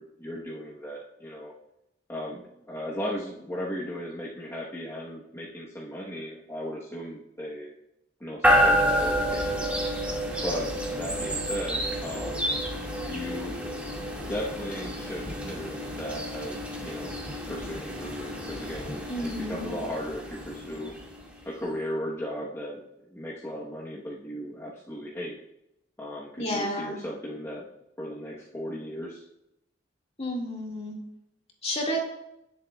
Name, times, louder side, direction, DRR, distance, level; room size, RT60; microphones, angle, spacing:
voice 1, 0.0-1.5 2.1-7.7 8.2-9.6 10.4-12.5 13.1-13.6 14.3-17.1 17.5-20.9 21.4-22.8 23.1-25.4 26.0-27.7 28.0-29.2, equal, 15° left, -5 dB, 1.1 m, -36 dB
sound 1, 8.4-21.4, equal, 5° right, 1.9 m, -29 dB
voice 2, 19.1-19.7 26.4-27.0 30.2-31.0 31.6-32.0, equal, 35° left, -1 dB, 2.0 m, -31 dB
18.0 x 7.5 x 2.3 m, 0.84 s
head